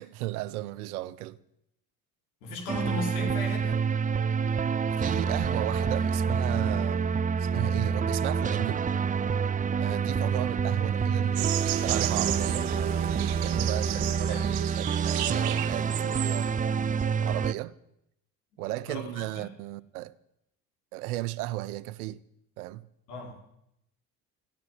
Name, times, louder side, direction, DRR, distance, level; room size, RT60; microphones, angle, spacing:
voice 1, 0.0-1.4 5.0-8.8 9.8-12.7 13.4-16.5 17.2-17.7 18.6-20.1 20.9-22.2 22.6-22.9, right 16 dB, 80° right, 0.8 m, -35 dB
voice 2, 2.4-3.8 13.8-14.5 18.6-19.2 23.1-23.4, left 2 dB, 80° left, 4.8 m, -37 dB
sound 1, 2.7-17.5, right 6 dB, 20° right, 0.5 m, -27 dB
sound 2, 11.4-16.7, right 14 dB, 65° right, 1.3 m, -33 dB
15.5 x 9.5 x 9.5 m
hypercardioid pair, 60°, 44 cm